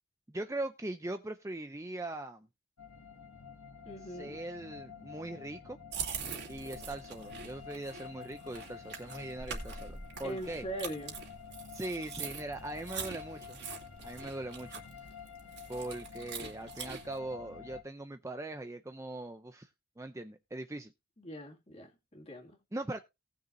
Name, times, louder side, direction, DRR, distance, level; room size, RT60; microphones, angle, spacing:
voice 1, 0.3-2.5 4.2-5.8 6.5-10.6 11.7-13.6 14.0-14.8 15.7-19.7 20.0-20.9 22.7-23.0, right 2 dB, 15° right, 0.5 m, -40 dB
sound 1, 2.8-17.8, left 6 dB, 75° left, 1.6 m, -49 dB
voice 2, 3.9-4.4 10.2-11.2 21.2-22.6, equal, 30° left, 2.2 m, -41 dB
sound 2, 5.9-17.2, right 6 dB, 50° right, 2.6 m, -43 dB
18.5 x 6.6 x 2.7 m
head